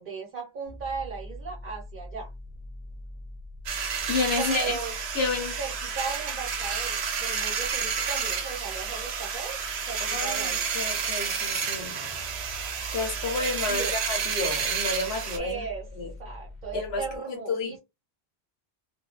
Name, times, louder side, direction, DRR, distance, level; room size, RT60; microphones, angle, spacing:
voice 1, 0.0-2.3 4.3-5.0 5.6-10.7 13.7-14.0 15.4-15.9 16.2-17.8, right 5 dB, 50° right, 0.8 m, -36 dB
sound 1, 0.6-17.2, left 1 dB, 50° left, 0.8 m, -43 dB
sound 2, 3.7-15.4, right 6 dB, 80° right, 0.9 m, -30 dB
voice 2, 4.1-4.8 5.1-5.5 10.0-12.0 12.9-15.6 15.9-16.1 16.7-17.8, left 3 dB, 70° left, 1.2 m, -30 dB
2.5 x 2.2 x 2.4 m
omnidirectional pair, 1.1 m